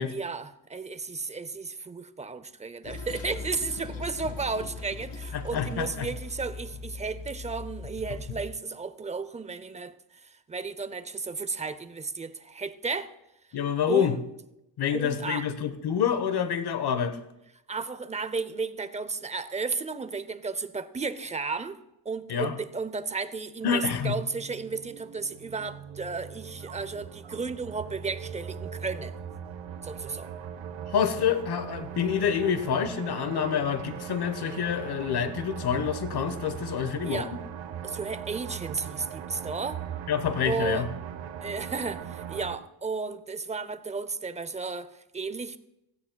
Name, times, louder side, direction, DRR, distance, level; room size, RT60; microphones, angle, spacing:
voice 1, 0.1-13.1 13.9-14.2 14.9-15.5 17.7-21.8 22.0-29.2 29.8-30.3 37.0-37.3 37.8-39.8 40.4-40.9 41.4-45.6, right 4 dB, 15° right, 0.5 m, -34 dB
Toilet flush, 2.8-8.5, left 4 dB, 80° left, 2.2 m, -39 dB
voice 2, 5.3-6.1 13.5-14.1 14.8-17.2 22.3-22.6 23.6-24.1 30.9-37.2 40.1-40.9, left 8 dB, 60° left, 1.1 m, -27 dB
sound 1, 23.6-42.6, right 9 dB, 90° right, 1.0 m, -40 dB
17.0 x 14.5 x 2.3 m
cardioid pair, 135°, 43 cm